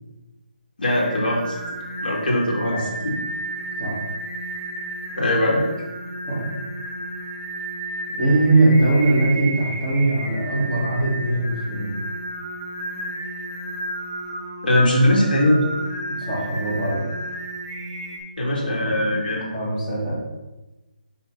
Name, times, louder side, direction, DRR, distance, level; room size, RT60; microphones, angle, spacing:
voice 1, 0.8-1.6 2.0-3.1 5.2-5.6 14.6-15.6 18.4-19.4, left 1 dB, 70° left, -2 dB, 2.6 m, -20 dB
Singing, 0.8-18.2, right 1 dB, 25° right, 1.6 m, -32 dB
voice 2, 8.2-12.0 16.3-17.0 18.6-19.1 19.4-20.1, right 2 dB, 10° left, -12 dB, 2.4 m, -21 dB
7.2 x 5.8 x 4.1 m, 1.1 s
hypercardioid pair, 175°, 5 cm